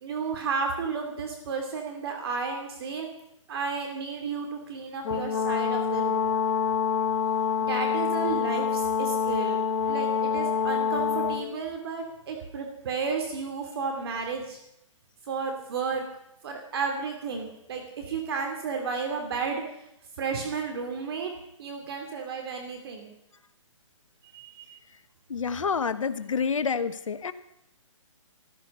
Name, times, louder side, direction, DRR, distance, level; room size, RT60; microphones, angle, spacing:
voice 1, 0.0-3.1 3.5-6.3 7.6-9.6 9.9-14.6 15.3-16.1 16.4-19.6 20.2-21.3 21.6-23.1 24.3-24.8, right 5 dB, 45° right, 3 dB, 2.7 m, -32 dB
Brass instrument, 5.1-11.4, left 6 dB, 40° left, 2.7 m, -26 dB
voice 2, 25.3-27.3, left 5 dB, 70° left, 12 dB, 1.2 m, -28 dB
14.5 x 14.5 x 5.5 m, 0.81 s
hypercardioid pair, 140°, 17 cm